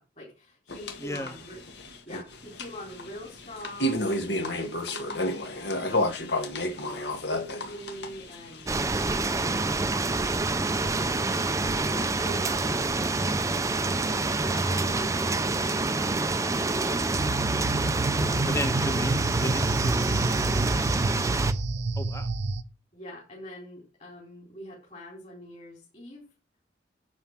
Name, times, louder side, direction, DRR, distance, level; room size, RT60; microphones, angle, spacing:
voice 1, 0.0-6.0 6.6-8.7 9.4-10.6 11.0-11.4 11.6-16.1 16.6-17.8 18.1-18.9 21.1-21.5 22.9-26.2, equal, 35° left, 4.2 m, -44 dB
sound 1, 0.7-9.3, left 1 dB, 65° left, 1.8 m, -31 dB
voice 2, 1.0-1.3 18.4-20.5 22.0-22.3, left 1 dB, 15° left, 1.0 m, -34 dB
sound 2, 8.7-21.5, right 3 dB, 15° right, 0.6 m, -27 dB
sound 3, 17.1-22.6, right 2 dB, 70° right, 0.8 m, -29 dB
11.5 x 4.7 x 7.3 m
head